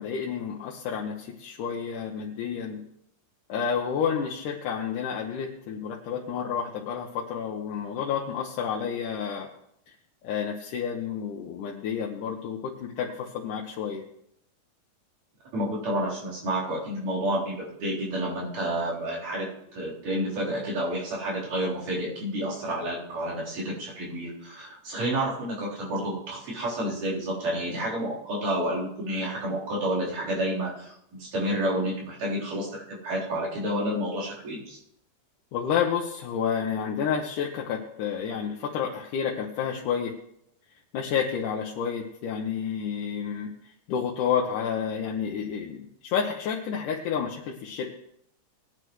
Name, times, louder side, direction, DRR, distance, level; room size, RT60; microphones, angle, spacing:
voice 1, 0.0-2.8 3.5-9.5 10.2-14.0 35.5-40.1 40.9-43.5 43.9-47.9, left 7 dB, 90° left, -1 dB, 2.5 m, -30 dB
voice 2, 15.5-34.8, right 1 dB, 90° right, -7 dB, 5.5 m, -30 dB
19.5 x 9.9 x 3.1 m, 0.77 s
omnidirectional pair, 3.5 m